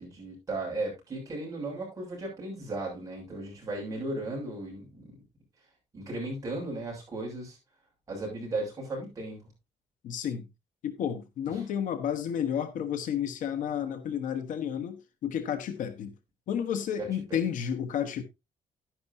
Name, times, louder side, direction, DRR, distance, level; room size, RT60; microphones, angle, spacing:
voice 1, 0.0-5.1 5.9-7.6 8.1-9.4 11.5-11.6 17.0-17.4, right 2 dB, 25° right, 7.1 m, -36 dB
voice 2, 10.0-10.5 10.8-16.1 16.5-18.2, left 9 dB, 70° left, 1.3 m, -31 dB
11.0 x 10.5 x 2.8 m
cardioid pair, 155°, 14 cm